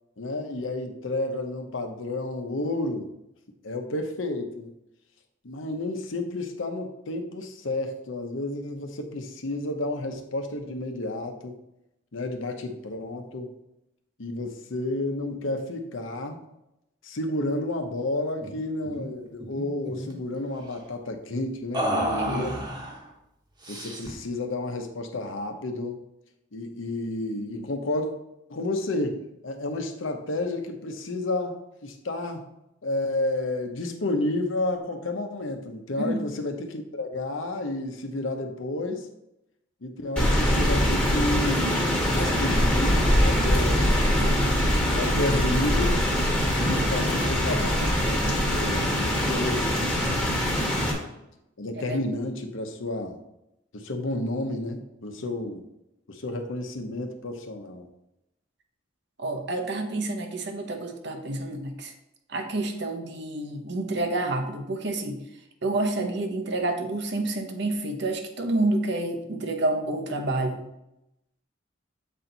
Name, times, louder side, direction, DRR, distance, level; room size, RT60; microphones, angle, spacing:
voice 1, 0.2-3.1 3.6-4.7 5.4-11.5 12.1-13.5 14.2-16.4 17.0-22.6 23.7-26.0 26.5-28.1 28.5-32.4 32.8-39.1 39.8-44.4 44.9-46.0 46.5-49.6 50.6-50.8 51.6-53.2 53.7-55.6 56.1-57.9, left 2 dB, 85° left, 5 dB, 0.9 m, -31 dB
sound 1, 18.4-18.6 18.8-19.1 19.4-20.2 21.7-23.0 23.6-24.2, right 1 dB, 25° right, 1.1 m, -31 dB
voice 2, 22.2-22.6 36.1-36.2 51.8-52.0 59.2-61.9 62.3-65.2 65.6-70.7, right 2 dB, 60° right, 5 dB, 0.9 m, -29 dB
Rain, 40.2-50.9, equal, 5° left, 1.3 m, -23 dB
7.3 x 4.4 x 3.9 m, 0.86 s
head